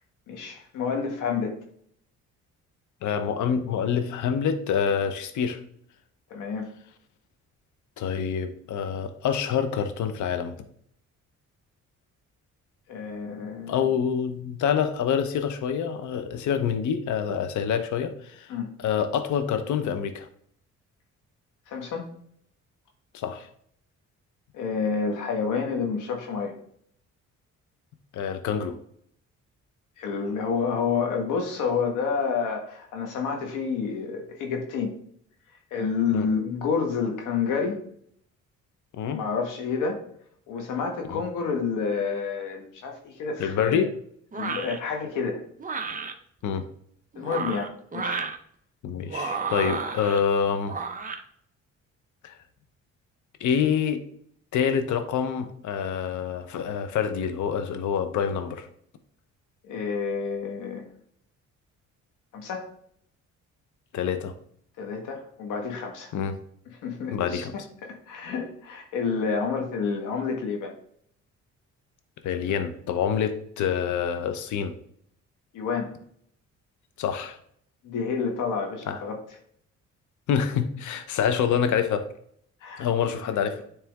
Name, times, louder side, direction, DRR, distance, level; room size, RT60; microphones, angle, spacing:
voice 1, 0.3-1.6 6.3-6.7 12.9-13.9 18.5-18.8 21.7-22.1 24.5-26.6 30.0-34.9 35.7-37.8 39.1-40.0 40.5-43.8 44.3-45.4 47.1-48.2 49.6-49.8 59.6-60.8 62.3-62.7 64.8-66.1 66.8-70.7 75.5-76.0 77.8-79.2 82.6-82.9 83.3-83.4, left 5 dB, 90° left, 3 dB, 1.6 m, -29 dB
voice 2, 3.0-5.6 8.0-10.6 13.7-18.5 18.8-20.3 23.1-23.5 28.1-28.8 36.1-36.3 38.9-39.2 41.1-41.2 43.4-43.9 46.4-46.6 48.8-50.7 52.2-52.4 53.4-54.0 54.5-58.7 63.9-64.3 66.1-66.4 67.1-67.5 72.2-74.8 77.0-77.4 78.9-79.0 80.3-82.0 82.8-83.6, left 7 dB, 75° left, 9 dB, 0.9 m, -26 dB
sound 1, 44.3-44.8 45.6-46.1 47.1-48.4 49.1-50.2 50.7-51.2, right 4 dB, 25° right, 0.8 m, -32 dB
9.6 x 3.4 x 3.5 m, 0.65 s
cardioid pair, 90°, 30 cm